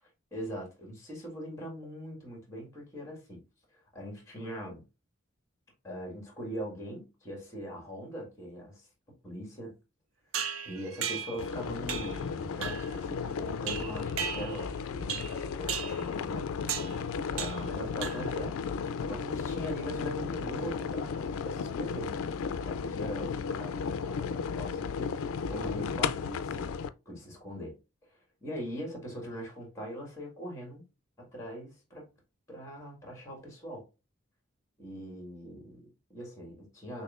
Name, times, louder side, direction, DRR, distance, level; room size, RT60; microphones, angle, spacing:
voice 1, 0.3-3.4 3.9-4.8 5.8-8.9 9.2-9.8 10.7-22.2 22.6-26.8 27.1-27.8 28.1-30.8 31.2-32.1 32.5-33.9 34.8-37.0, equal, 15° left, 1.7 m, -41 dB
sound 1, 10.3-11.5 11.9-12.2 12.6-13.0 13.7-14.7 15.1-15.4 15.7-16.0 16.7-17.0 17.4-17.7 18.0-18.4, right 7 dB, 85° right, 0.5 m, -36 dB
sound 2, 11.4-26.9, left 6 dB, 90° left, 0.4 m, -34 dB
6.2 x 2.6 x 2.4 m
head